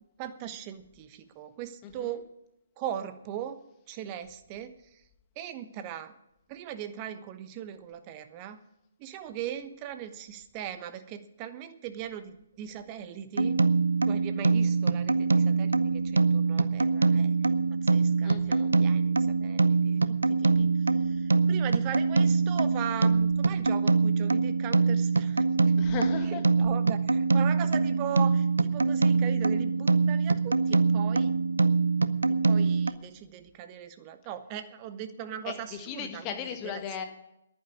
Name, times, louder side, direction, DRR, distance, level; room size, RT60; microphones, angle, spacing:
voice 1, 0.2-2.3 2.8-3.6 3.9-5.0 5.4-6.1 6.5-8.6 9.0-13.6 14.0-25.5 26.3-31.3 32.3-36.8, right 10 dB, 30° right, 10 dB, 1.1 m, -39 dB
voice 2, 1.8-2.2 18.2-18.7 25.8-26.4 35.4-37.0, left 8 dB, 25° left, 5 dB, 1.8 m, -37 dB
sound 1, 13.4-32.9, right 4 dB, 80° right, 0.6 m, -24 dB
11.0 x 9.4 x 8.6 m, 0.85 s
figure-of-eight pair, 135°, 0 cm